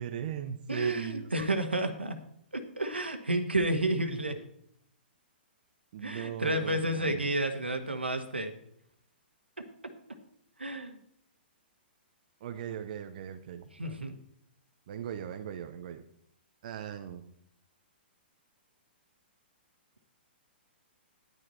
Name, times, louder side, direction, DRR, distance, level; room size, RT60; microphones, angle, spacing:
voice 1, 0.0-1.6 5.9-7.3 12.4-14.0 14.9-16.1 16.6-17.2, right 9 dB, 45° right, 7 dB, 0.8 m, -39 dB
voice 2, 0.7-2.2 2.5-4.4 6.0-8.5 10.6-11.0 13.8-14.2, right 1 dB, 85° right, 7 dB, 1.5 m, -31 dB
11.0 x 9.9 x 4.3 m, 0.69 s
figure-of-eight pair, 115°, 6 cm